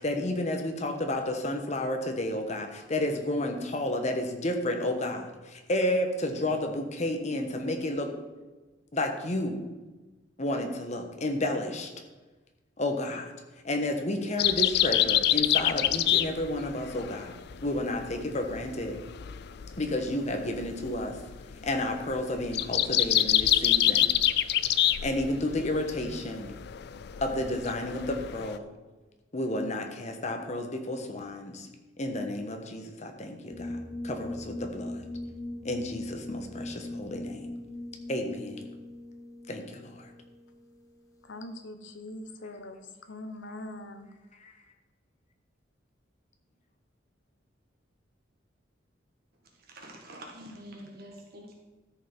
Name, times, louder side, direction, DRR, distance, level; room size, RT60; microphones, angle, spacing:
voice 1, 0.0-8.1 8.9-9.6 10.4-11.9 12.8-13.3 13.6-17.3 17.6-19.0 19.8-21.2 21.6-24.1 25.0-26.5 27.2-28.7 29.3-31.7 32.0-33.8 34.0-35.0 35.6-37.5 38.1-38.7 39.5-40.1 44.4-44.5, left 1 dB, 40° left, 4 dB, 1.1 m, -31 dB
sound 1, 14.4-28.6, left 12 dB, 60° left, 0.4 m, -27 dB
sound 2, 33.5-41.0, left 1 dB, 20° left, 0.6 m, -40 dB
voice 2, 41.3-42.8 43.1-44.1, left 1 dB, 80° left, 8 dB, 1.0 m, -42 dB
voice 3, 49.7-51.5, right 1 dB, 55° right, 0 dB, 1.6 m, -46 dB
13.0 x 5.4 x 4.5 m, 1.2 s
head